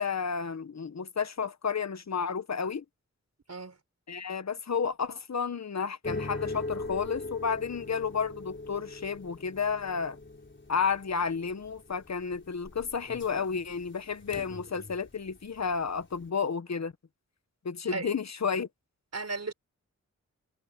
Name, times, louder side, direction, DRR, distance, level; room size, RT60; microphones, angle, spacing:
voice 1, 0.0-2.8 4.1-10.2 10.7-16.9 17.6-18.7, left 6 dB, 60° left, 1.2 m, -31 dB
sound 1, 6.0-15.3 15.6-16.2, left 2 dB, 40° left, 4.2 m, -41 dB
voice 2, 19.1-19.5, right 3 dB, 60° right, 5.9 m, -34 dB
cardioid pair, 55°, 30 cm